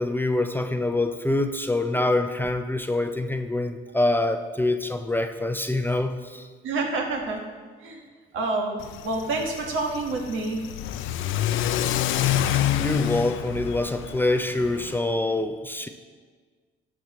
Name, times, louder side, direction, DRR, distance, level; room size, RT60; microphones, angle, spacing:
voice 1, 0.0-6.5 12.4-15.9, left 2 dB, 10° left, 7 dB, 0.5 m, -25 dB
voice 2, 6.6-7.5 7.8-8.0 8.3-8.8 9.0-10.6, right 3 dB, 80° right, 1 dB, 1.5 m, -28 dB
Car / Accelerating revving vroom, 8.8-15.0, left 11 dB, 80° left, 0.5 m, -27 dB
11.5 x 7.2 x 3.0 m, 1.5 s
cardioid pair, 90°, 20 cm